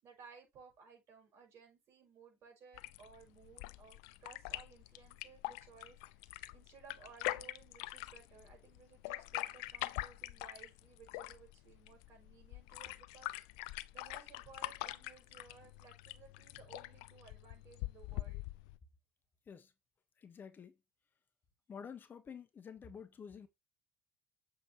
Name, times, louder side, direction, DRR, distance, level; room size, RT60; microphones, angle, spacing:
voice 1, 0.0-13.3 13.9-18.4, right 5 dB, 55° right, 5.9 m, -59 dB
sound 1, 2.7-18.8, left 19 dB, 70° left, 0.5 m, -44 dB
voice 2, 20.2-20.7 21.7-23.5, left 7 dB, 35° left, 1.3 m, -50 dB
7.8 x 6.3 x 3.0 m
hypercardioid pair, 75°, 6 cm